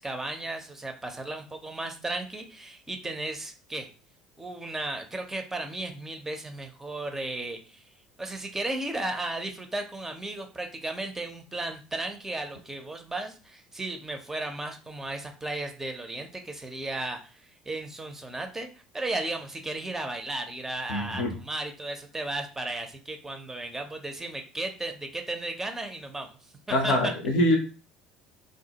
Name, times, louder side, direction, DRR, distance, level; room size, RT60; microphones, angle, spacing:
voice 1, 0.0-3.9 4.4-7.8 8.2-18.7 18.9-26.3 26.7-27.1, right 2 dB, 15° right, 4 dB, 0.5 m, -35 dB
voice 2, 20.9-21.3 26.7-27.6, left 1 dB, 60° left, 3 dB, 0.6 m, -24 dB
2.2 x 2.0 x 2.8 m, 0.36 s
figure-of-eight pair, 65°, 3 cm